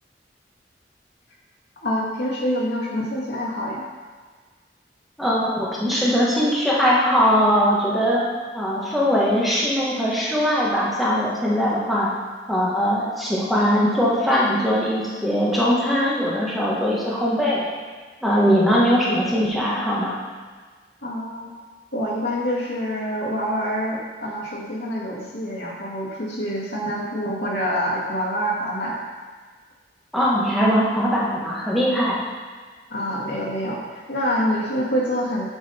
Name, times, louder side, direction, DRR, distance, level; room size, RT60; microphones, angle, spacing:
voice 1, 1.8-3.8 21.0-21.5 21.9-29.0 32.9-33.8 34.1-35.5, equal, 70° left, -4 dB, 1.9 m, -26 dB
voice 2, 5.2-8.2 8.5-12.1 12.5-17.6 18.2-20.1 30.1-32.2, equal, ahead, -7 dB, 1.4 m, -20 dB
9.3 x 5.6 x 4.3 m, 1.5 s
head